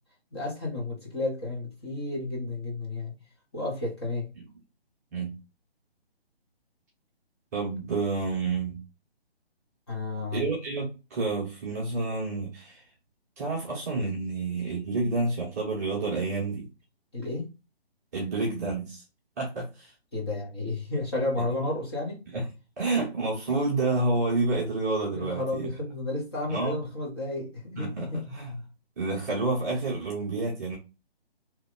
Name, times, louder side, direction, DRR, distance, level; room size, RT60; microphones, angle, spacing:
voice 1, 0.3-3.2 3.5-4.3 9.9-10.5 17.1-17.5 20.1-22.2 25.1-28.2, left 2 dB, 25° left, 0.8 m, -32 dB
voice 2, 7.5-8.8 10.3-12.8 13.4-16.7 18.1-19.0 19.4-19.9 22.3-22.4 22.8-25.7 26.5-26.8 27.8-28.6 29.0-30.8, right 3 dB, 15° right, 0.8 m, -29 dB
2.9 x 2.2 x 3.7 m
figure-of-eight pair, 140°, 31 cm